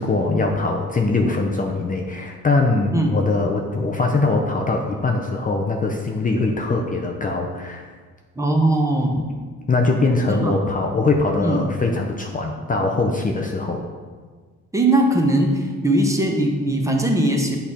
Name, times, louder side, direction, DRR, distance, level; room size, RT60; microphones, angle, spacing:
voice 1, 0.0-7.9 9.7-13.8, left 3 dB, 25° left, 1 dB, 0.6 m, -22 dB
voice 2, 8.4-9.2 10.3-10.5 11.4-11.6 14.7-17.6, right 1 dB, 10° right, 1 dB, 0.9 m, -20 dB
8.0 x 3.4 x 4.3 m, 1.5 s
cardioid pair, 90°, 30 cm